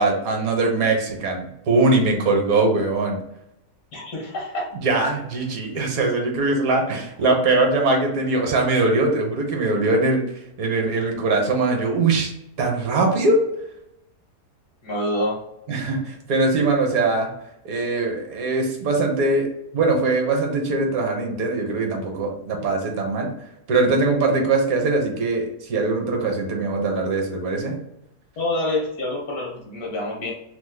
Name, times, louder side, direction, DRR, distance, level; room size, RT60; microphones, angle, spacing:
voice 1, 0.0-3.2 4.8-10.2 10.6-12.3 12.6-13.4 15.7-17.3 17.6-23.3 23.7-27.8, right 3 dB, 70° right, 2 dB, 1.1 m, -21 dB
voice 2, 3.9-4.7 14.8-15.4 28.4-30.3, left 1 dB, 70° left, -2 dB, 1.3 m, -27 dB
3.2 x 2.0 x 3.1 m, 0.83 s
omnidirectional pair, 1.7 m